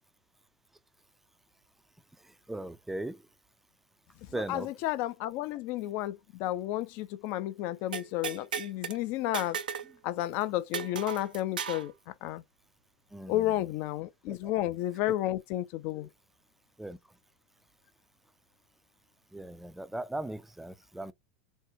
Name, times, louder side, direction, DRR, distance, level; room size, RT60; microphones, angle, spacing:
voice 1, 2.5-3.2 4.3-4.7 13.1-13.5 14.3-14.5 16.0-16.1 16.8-17.0 19.3-21.1, right 1 dB, 5° right, 0.4 m, -38 dB
voice 2, 4.3-9.6 10.0-11.9 12.2-12.4 13.3-16.1, left 14 dB, 55° left, 0.4 m, -32 dB
sound 1, 7.9-9.0 9.3-9.9 10.2-10.3 10.7-11.9, right 7 dB, 80° right, 0.4 m, -36 dB
3.5 x 2.1 x 2.8 m
hypercardioid pair, 85°, 5 cm